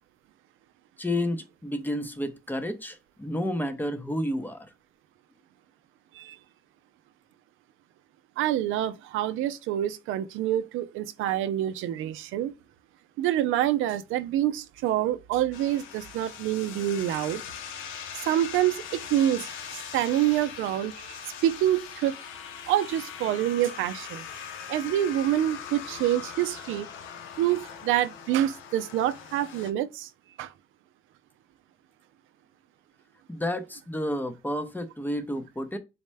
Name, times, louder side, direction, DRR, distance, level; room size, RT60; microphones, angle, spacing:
voice 1, 1.0-4.7 33.3-35.8, left 1 dB, 10° left, 0.6 m, -31 dB
voice 2, 8.4-12.5 13.2-17.4 18.1-22.2 22.7-24.2 24.7-26.9 27.4-30.1 30.4-30.5, right 12 dB, 90° right, 0.4 m, -27 dB
sound 1, 15.5-29.7, left 7 dB, 90° left, 0.6 m, -41 dB
4.2 x 2.1 x 3.2 m
cardioid pair, 90°, 20 cm